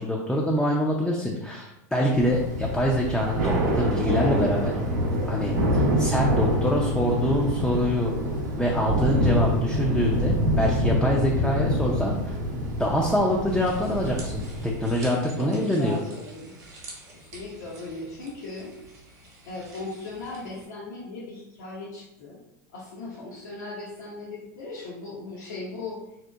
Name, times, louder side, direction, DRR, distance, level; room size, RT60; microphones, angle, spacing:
voice 1, 0.0-4.7 5.3-8.1 8.6-12.4 12.8-16.0, equal, 5° left, -3 dB, 0.3 m, -25 dB
Thunder / Rain, 2.1-15.0, equal, 85° right, 0.6 m, -26 dB
sound 1, 13.5-20.7, right 2 dB, 35° right, 0.8 m, -47 dB
voice 2, 15.4-16.6 17.1-18.7 19.5-22.4 22.7-26.0, left 3 dB, 80° left, -6 dB, 0.6 m, -38 dB
2.7 x 2.1 x 2.2 m, 0.90 s
hypercardioid pair, 105°, 10 cm